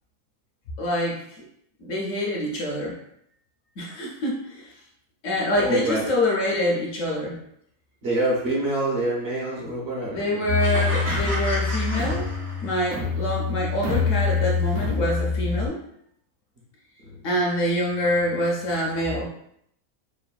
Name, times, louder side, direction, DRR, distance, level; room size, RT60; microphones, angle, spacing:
voice 1, 0.8-1.2 1.8-3.0 3.8-4.7 5.2-7.4 10.1-12.3 12.6-15.8 17.2-19.3, left 1 dB, 70° left, -2 dB, 0.9 m, -25 dB
voice 2, 5.6-6.1 8.0-10.5 13.0-13.1, right 1 dB, 55° right, -5 dB, 0.8 m, -26 dB
sound 1, 10.5-15.7, left 5 dB, 85° right, 1.1 m, -25 dB
sound 2, 10.6-12.9, equal, 25° right, 0.3 m, -32 dB
3.1 x 2.0 x 2.3 m, 0.72 s
omnidirectional pair, 1.5 m